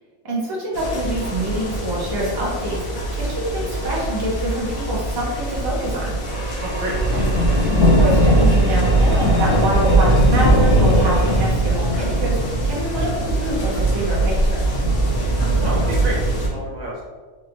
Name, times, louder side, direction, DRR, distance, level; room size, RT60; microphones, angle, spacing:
voice 1, 0.2-6.2 7.7-12.4 12.6-14.6, equal, 20° right, -4 dB, 0.6 m, -26 dB
sound 1, 0.7-16.5, right 1 dB, 60° left, 1.0 m, -20 dB
sound 2, 6.2-11.5, left 1 dB, 35° left, 1.6 m, -35 dB
voice 2, 6.6-7.3 7.5-7.6 15.6-17.0, right 1 dB, 70° right, -3 dB, 1.3 m, -29 dB
3.8 x 3.2 x 2.5 m, 1.4 s
omnidirectional pair, 1.5 m